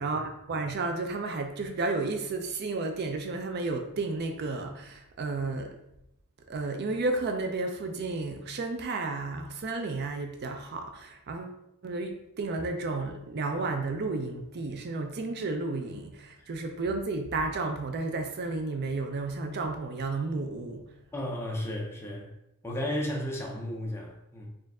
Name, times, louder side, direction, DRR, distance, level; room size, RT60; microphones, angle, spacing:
voice 1, 0.0-5.8 6.5-11.6 11.8-20.9, right 3 dB, 50° right, 5 dB, 0.4 m, -32 dB
voice 2, 21.1-22.3 22.6-24.5, left 1 dB, 10° left, -1 dB, 0.7 m, -34 dB
4.4 x 2.5 x 3.5 m, 0.82 s
head